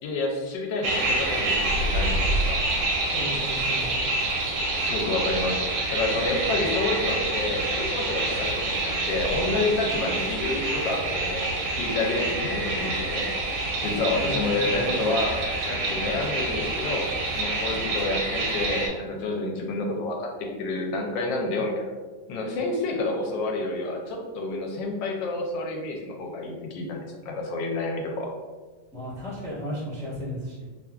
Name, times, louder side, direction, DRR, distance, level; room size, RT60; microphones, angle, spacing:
voice 1, 0.0-2.6 4.8-5.6 5.9-11.4 11.7-13.2 13.8-15.4 15.7-17.1 17.3-21.8 22.3-28.3, left 2 dB, 85° left, 1 dB, 1.2 m, -29 dB
sound 1, 0.8-18.9, right 2 dB, 75° right, 1.2 m, -27 dB
voice 2, 3.0-3.9 14.2-14.8 28.9-30.7, equal, 10° left, -10 dB, 0.3 m, -35 dB
2.9 x 2.5 x 2.2 m, 1.4 s
omnidirectional pair, 1.9 m